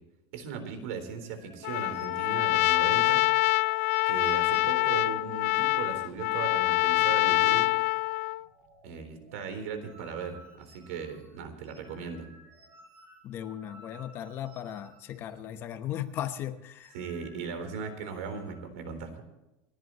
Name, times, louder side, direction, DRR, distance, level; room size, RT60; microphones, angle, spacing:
voice 1, 0.3-3.2 4.1-7.7 8.8-12.3 16.9-19.2, right 6 dB, 70° right, 7 dB, 3.9 m, -38 dB
sound 1, 0.8-6.7 7.0-7.2 7.4-8.0 8.3-15.6 15.9-16.1 16.6-18.6, right 1 dB, 35° right, 7.0 m, -56 dB
Trumpet, 1.6-8.4, left 20 dB, 65° left, 0.4 m, -25 dB
voice 2, 13.2-16.9, left 11 dB, 30° left, 9 dB, 1.0 m, -37 dB
29.0 x 11.0 x 3.0 m, 0.97 s
supercardioid pair, 175°, 8 cm